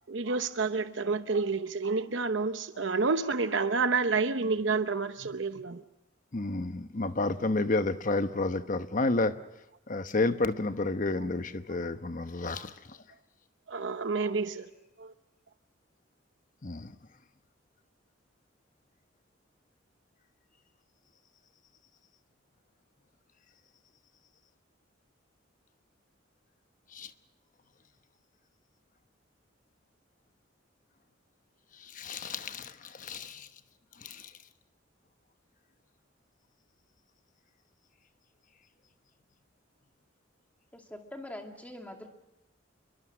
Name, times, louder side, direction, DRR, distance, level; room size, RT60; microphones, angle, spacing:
voice 1, 0.1-5.8 12.5-12.6 13.7-14.7 15.0-15.1, right 4 dB, 65° right, 0.9 m, -29 dB
voice 2, 6.3-9.3 9.9-13.0 16.6-16.9 26.9-27.1 31.8-33.5 34.0-34.3, left 2 dB, 40° left, 1.0 m, -31 dB
voice 3, 40.7-42.1, left 1 dB, 10° left, 2.4 m, -43 dB
28.0 x 23.0 x 6.3 m
head